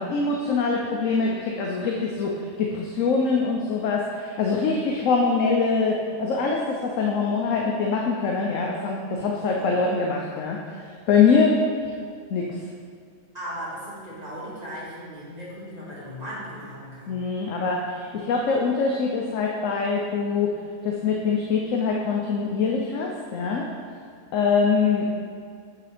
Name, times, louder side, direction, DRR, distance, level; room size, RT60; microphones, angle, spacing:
voice 1, 0.0-2.3 2.6-10.6 11.1-11.6 12.3-12.6 17.1-20.5 20.8-23.7 24.3-25.1, left 5 dB, 70° left, -1 dB, 1.1 m, -23 dB
voice 2, 9.4-9.7 13.3-17.2, equal, 30° right, -8 dB, 2.2 m, -37 dB
8.7 x 4.0 x 5.0 m, 2.2 s
omnidirectional pair, 1.5 m